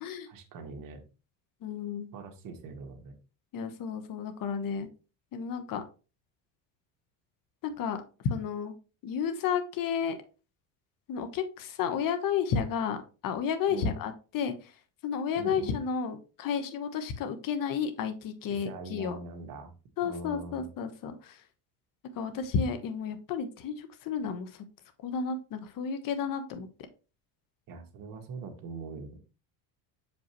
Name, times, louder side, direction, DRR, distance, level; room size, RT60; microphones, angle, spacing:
voice 1, 0.3-1.0 2.1-3.2 13.7-13.9 15.4-15.8 18.6-19.7 20.0-20.7 27.7-29.2, right 4 dB, 50° right, 4 dB, 1.7 m, -42 dB
voice 2, 1.6-2.1 3.5-4.9 5.3-5.8 7.6-8.0 8.3-8.7 9.0-10.2 11.1-13.0 13.2-14.7 15.0-19.2 20.0-21.4 22.1-24.6 25.0-26.7, left 6 dB, 50° left, 9 dB, 1.2 m, -32 dB
6.7 x 5.2 x 3.1 m, 0.33 s
supercardioid pair, 115°, 42 cm